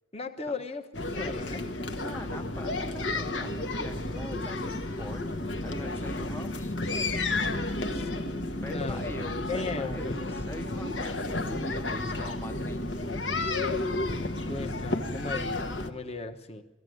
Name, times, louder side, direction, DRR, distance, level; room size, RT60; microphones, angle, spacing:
voice 1, 0.1-0.8 1.1-1.8 5.8-6.1 7.9-8.3 8.6-9.0 9.5-10.4 14.5-16.6, left 3 dB, 30° left, 6 dB, 1.1 m, -37 dB
sound 1, 0.9-15.9, left 2 dB, 80° left, 1.5 m, -32 dB
voice 2, 2.0-6.7 8.6-12.8, left 1 dB, 10° left, 5 dB, 0.6 m, -43 dB
19.0 x 14.5 x 9.3 m, 1.1 s
head